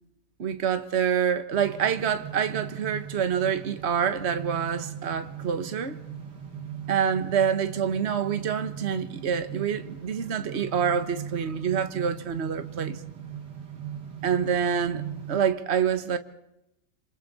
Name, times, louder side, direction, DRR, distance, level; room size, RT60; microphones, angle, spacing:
voice 1, 0.4-6.0 6.9-13.0 14.2-15.0 15.3-16.2, right 7 dB, 40° right, 1.5 m, -26 dB
sound 1, 1.5-15.4, right 9 dB, 75° right, 2.6 m, -39 dB
27.5 x 27.5 x 4.2 m
omnidirectional pair, 1.9 m